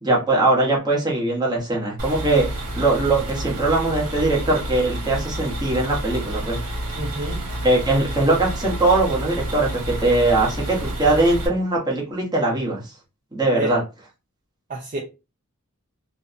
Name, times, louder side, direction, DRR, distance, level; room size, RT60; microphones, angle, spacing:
voice 1, 0.0-2.4 2.8-6.6 7.6-12.8 13.3-13.8, right 2 dB, 20° right, -3 dB, 0.9 m, -21 dB
sound 1, 2.0-11.5, right 1 dB, 90° right, 0.9 m, -29 dB
voice 2, 7.0-7.5 13.5-13.7 14.7-15.0, right 1 dB, 35° right, -2 dB, 0.4 m, -28 dB
2.6 x 2.1 x 2.5 m, 0.28 s
head